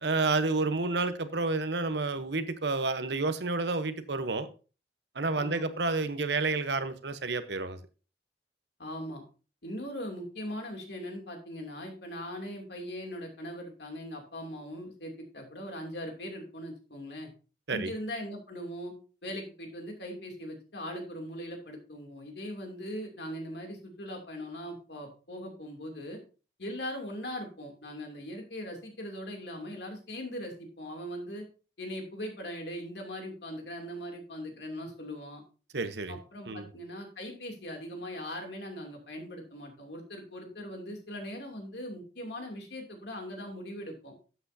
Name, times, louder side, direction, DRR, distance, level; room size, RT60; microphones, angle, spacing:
voice 1, 0.0-4.5 5.1-7.8 17.7-17.9 35.7-36.2 36.5-36.7, right 3 dB, 70° right, 11 dB, 1.0 m, -30 dB
voice 2, 8.8-9.2 9.6-17.3 17.7-18.9 19.2-26.2 26.6-31.4 31.8-35.4 36.1-44.1, equal, 70° left, 2 dB, 2.8 m, -40 dB
12.5 x 8.1 x 2.8 m, 0.35 s
head